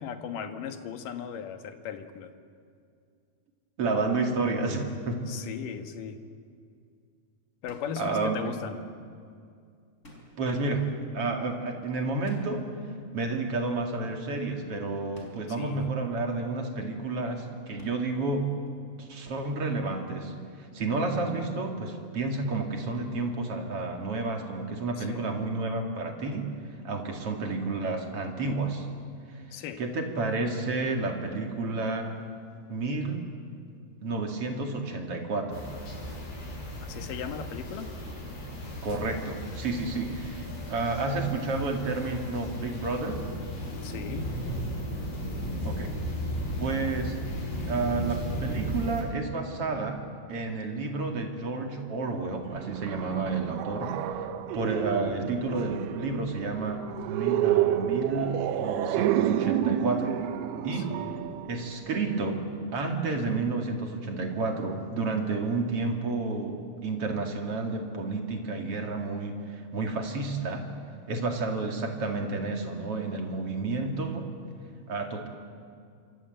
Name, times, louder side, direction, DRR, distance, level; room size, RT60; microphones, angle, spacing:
voice 1, 0.0-2.3 5.1-6.2 7.6-8.8 15.5-15.9 25.0-25.4 29.5-29.8 36.9-37.9 43.8-44.3 54.7-54.9 60.7-61.1, left 7 dB, 65° left, 7 dB, 2.7 m, -38 dB
voice 2, 3.8-5.2 8.0-8.5 10.4-10.9 11.1-12.7 13.1-18.5 19.0-20.3 20.6-26.5 26.8-28.9 29.3-29.4 29.8-32.1 32.7-33.3 34.0-35.7 38.8-43.2 45.6-45.9 46.6-47.2 47.7-50.0 50.3-54.3 54.5-56.8 57.1-60.2 60.6-60.9 61.4-62.4 62.7-70.7 71.1-74.3 74.9-75.3, right 3 dB, 40° right, 3 dB, 2.8 m, -30 dB
sound 1, 7.7-8.2 10.0-10.6 12.3-12.8 15.1-15.7 17.8-18.2, equal, 20° left, 4.3 m, -51 dB
sound 2, 35.5-49.0, equal, 90° left, 8.3 m, -35 dB
sound 3, 52.4-62.2, right 11 dB, 75° right, 2.7 m, -29 dB
27.0 x 24.5 x 8.0 m, 2.3 s
omnidirectional pair, 4.7 m